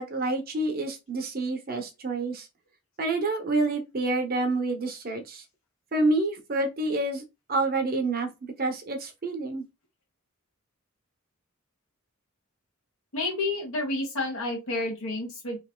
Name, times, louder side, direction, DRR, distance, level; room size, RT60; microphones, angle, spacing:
voice 1, 0.0-2.5 3.0-5.4 5.9-7.2 7.5-8.3 8.6-9.6, right 2 dB, 45° right, 0.7 m, -28 dB
voice 2, 13.1-15.6, left 2 dB, 65° left, 1.3 m, -30 dB
3.1 x 2.6 x 2.2 m
head